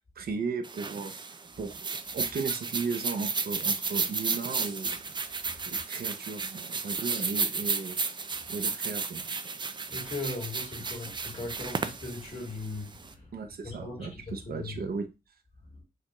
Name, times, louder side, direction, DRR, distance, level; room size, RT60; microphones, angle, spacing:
voice 1, 0.2-5.1 5.6-8.0 8.5-9.2 13.3-15.1, right 4 dB, 75° right, 0.7 m, -36 dB
sound 1, 0.6-13.1, right 4 dB, 30° right, 0.4 m, -33 dB
voice 2, 9.9-13.3 13.6-14.7 15.7-15.8, left 2 dB, 40° left, 2.2 m, -39 dB
6.6 x 2.5 x 3.0 m
wide cardioid pair, 155°, 16 cm